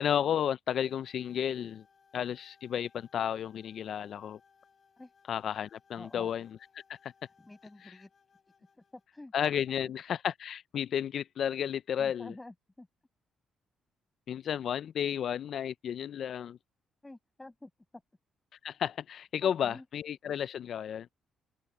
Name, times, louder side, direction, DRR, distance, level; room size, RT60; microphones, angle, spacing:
voice 1, 0.0-1.8 2.1-4.4 5.3-6.6 6.9-7.1 9.3-12.3 14.3-16.6 18.6-21.1, left 9 dB, 65° left, 0.6 m, -32 dB
sound 1, 0.7-9.1, left 6 dB, 45° left, 6.4 m, -66 dB
voice 2, 5.9-6.3 7.4-8.1 8.8-9.3 12.0-12.9 17.0-17.7 19.4-19.8, left 2 dB, 15° left, 6.1 m, -49 dB
cardioid pair, 90°, 0 cm